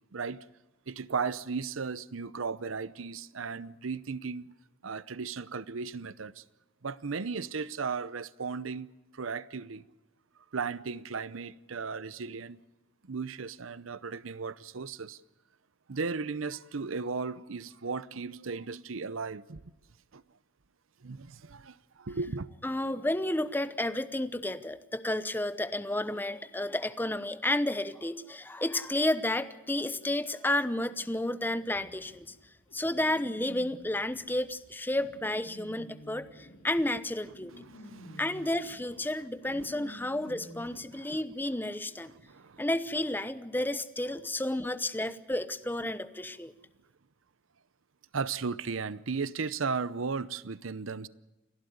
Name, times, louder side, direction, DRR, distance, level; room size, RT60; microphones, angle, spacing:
voice 1, 0.1-0.4 0.9-4.5 4.8-6.4 6.8-8.9 9.1-9.8 10.5-12.6 13.0-15.2 15.9-19.7 20.1-20.2 21.0-22.5 37.5-38.2 39.4-39.8 40.9-41.2 42.1-42.7 48.1-51.1, right 5 dB, 80° right, 0.7 m, -36 dB
voice 2, 22.6-32.3 32.7-37.5 38.2-42.1 42.6-46.5, left 1 dB, 10° left, 0.9 m, -31 dB
sound 1, 31.7-40.8, equal, 75° left, 4.9 m, -51 dB
29.5 x 12.0 x 9.5 m
head